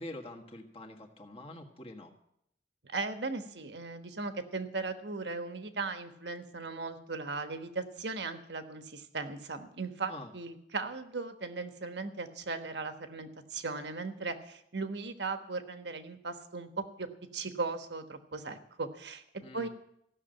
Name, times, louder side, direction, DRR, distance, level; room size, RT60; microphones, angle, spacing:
voice 1, 0.0-2.1 10.1-10.3 19.4-19.7, left 1 dB, 35° left, 2 dB, 1.6 m, -45 dB
voice 2, 2.8-19.2 19.5-19.7, right 3 dB, 75° right, 8 dB, 1.3 m, -38 dB
15.5 x 6.6 x 9.0 m, 0.75 s
head